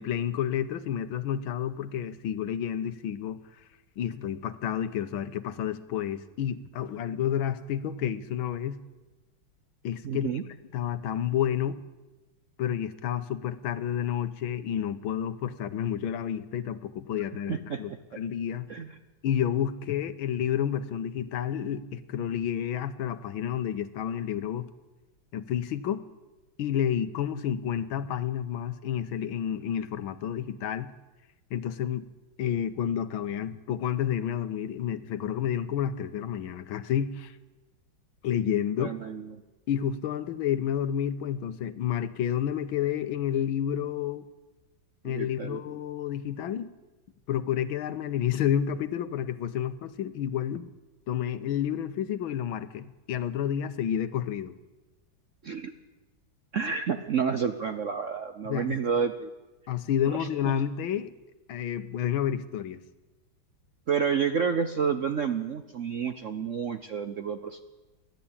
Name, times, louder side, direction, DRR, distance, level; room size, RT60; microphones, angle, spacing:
voice 1, 0.0-3.4 4.0-8.8 9.8-10.3 10.7-11.8 12.6-17.9 18.2-18.7 19.2-24.7 25.3-26.1 26.6-30.9 31.5-32.0 32.4-37.4 38.2-38.9 39.7-44.2 45.0-46.7 47.3-50.7 51.1-54.5 58.4-58.7 59.7-61.1 61.5-62.8, left 9 dB, 80° left, 12 dB, 1.7 m, -30 dB
voice 2, 10.0-10.4 17.5-17.8 18.7-19.0 38.8-39.4 45.0-45.6 55.4-55.7 56.5-59.3 60.1-60.5 63.9-67.6, right 6 dB, 60° right, 9 dB, 0.8 m, -30 dB
28.5 x 11.5 x 8.7 m, 1.1 s
omnidirectional pair, 2.3 m